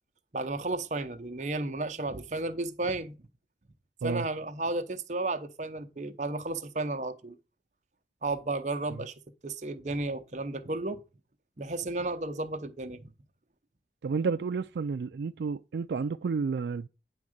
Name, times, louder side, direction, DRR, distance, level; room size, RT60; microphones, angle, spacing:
voice 1, 0.3-3.1 4.0-7.3 8.2-9.1 9.4-11.0 11.6-13.1, right 2 dB, 40° right, 0.7 m, -33 dB
voice 2, 14.0-16.9, right 5 dB, 75° right, 0.3 m, -31 dB
9.7 x 3.6 x 6.5 m
head